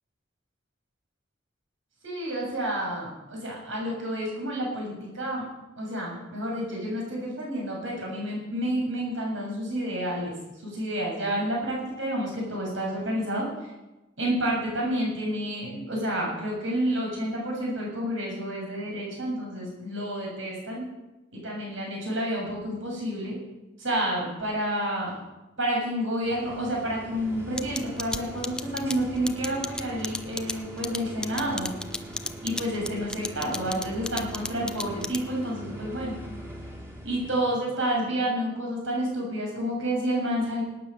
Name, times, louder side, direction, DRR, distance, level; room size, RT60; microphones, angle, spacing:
voice 1, 2.0-5.5 5.8-10.3 10.6-13.5 14.2-20.9 21.3-23.4 23.8-25.1 25.6-31.7 32.4-36.1 37.0-40.6, right 1 dB, 75° right, -2 dB, 6.8 m, -29 dB
sound 1, 26.2-37.6, right 1 dB, 15° right, 2.4 m, -42 dB
sound 2, 27.6-35.5, left 2 dB, 5° left, 0.5 m, -33 dB
18.0 x 9.4 x 6.8 m, 1.0 s
head